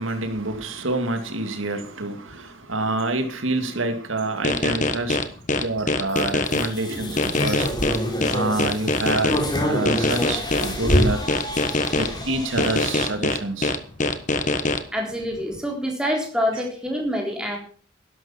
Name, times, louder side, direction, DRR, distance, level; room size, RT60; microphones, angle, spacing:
voice 1, 0.0-5.2 5.5-7.7 8.3-9.4 9.7-11.2 12.0-13.7, right 2 dB, 90° right, 7 dB, 2.3 m, -27 dB
sound 1, 4.4-6.7 7.2-9.4 9.9-12.1 12.6-14.8, left 2 dB, 40° left, 1.2 m, -23 dB
sound 2, 6.4-13.1, equal, 20° left, 3.8 m, -26 dB
voice 2, 14.9-17.6, equal, 5° right, 0 dB, 3.8 m, -26 dB
12.5 x 11.5 x 5.8 m, 0.41 s
head